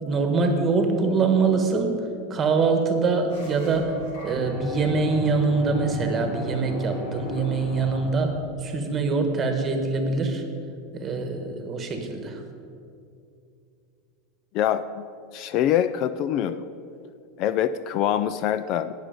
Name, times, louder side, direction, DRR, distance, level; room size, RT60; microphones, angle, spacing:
voice 1, 0.0-4.0 4.2-10.4 10.9-12.4, right 4 dB, 20° right, 5 dB, 1.3 m, -24 dB
sound 1, 3.3-8.3, left 1 dB, 75° left, 2.8 m, -36 dB
voice 2, 14.5-15.1 15.3-16.7 17.4-18.9, left 10 dB, 40° left, 13 dB, 0.3 m, -24 dB
18.0 x 6.4 x 5.2 m, 2.5 s
supercardioid pair, 155°, 0 cm